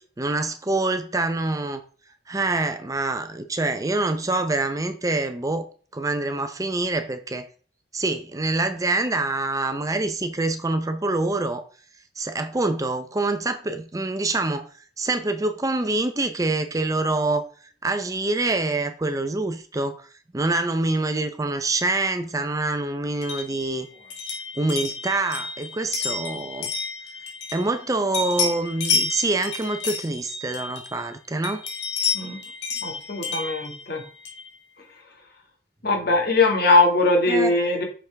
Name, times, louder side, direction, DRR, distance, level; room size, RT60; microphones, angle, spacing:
voice 1, 0.2-1.8 2.3-5.7 5.9-7.5 7.9-11.6 12.2-14.7 15.0-17.5 17.8-20.0 20.3-23.9 24.6-26.7 27.5-31.6 37.3-37.5, right 2 dB, 20° right, 8 dB, 0.5 m, -25 dB
sound 1, 23.2-27.8 28.1-31.1 31.4-34.5, left 5 dB, 75° left, 1.9 m, -30 dB
voice 2, 32.8-34.0 35.8-37.8, left 2 dB, 60° left, 1 dB, 2.0 m, -20 dB
6.1 x 5.5 x 3.4 m, 0.40 s
head